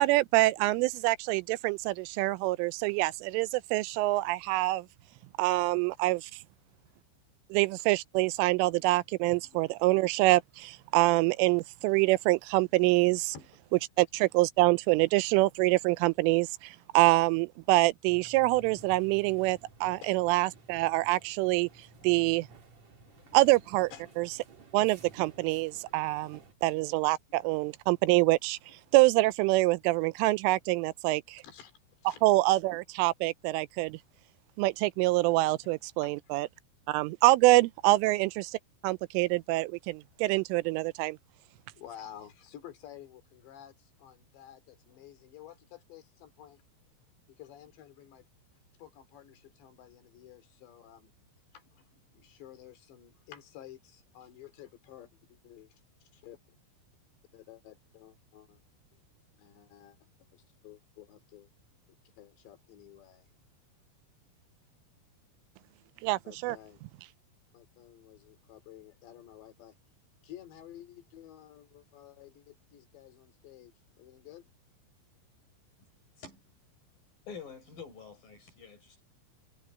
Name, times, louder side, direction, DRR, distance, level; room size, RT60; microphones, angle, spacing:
voice 1, 0.0-4.9 5.4-6.3 7.5-13.4 13.7-21.7 22.0-22.5 23.3-24.4 24.7-28.6 28.9-31.4 32.0-34.0 34.6-36.5 36.9-38.6 38.8-41.2 66.0-66.6, right 20 dB, 85° right, 3.0 m, -26 dB
sound 1, 18.1-26.5, right 4 dB, 40° right, 3.5 m, -54 dB
voice 2, 23.0-23.5 23.9-24.2 26.6-26.8 31.4-31.7 32.0-32.2 36.0-36.1 38.0-38.2 41.8-46.6 47.3-48.3 48.8-51.1 51.5-55.7 56.0-56.4 57.3-58.6 59.4-60.0 60.3-61.5 62.2-63.3 66.2-66.8 67.5-69.8 70.2-74.5, left 11 dB, 60° left, 4.9 m, -52 dB
voice 3, 76.2-76.5 77.3-79.0, left 6 dB, 45° left, 6.0 m, -47 dB
omnidirectional pair, 5.8 m